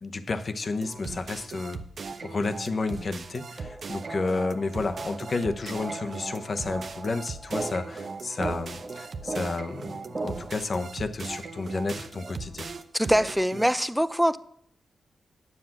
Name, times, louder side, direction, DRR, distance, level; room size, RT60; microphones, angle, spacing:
voice 1, 0.0-1.8 2.2-12.7, left 3 dB, 55° left, 8 dB, 1.0 m, -31 dB
sound 1, 0.8-13.7, right 4 dB, 65° right, 0.8 m, -39 dB
sound 2, 3.6-10.6, right 3 dB, 40° right, 1.0 m, -38 dB
voice 2, 12.9-14.4, equal, 5° right, 14 dB, 0.6 m, -23 dB
9.9 x 7.3 x 6.0 m, 0.68 s
supercardioid pair, 45°, 0 cm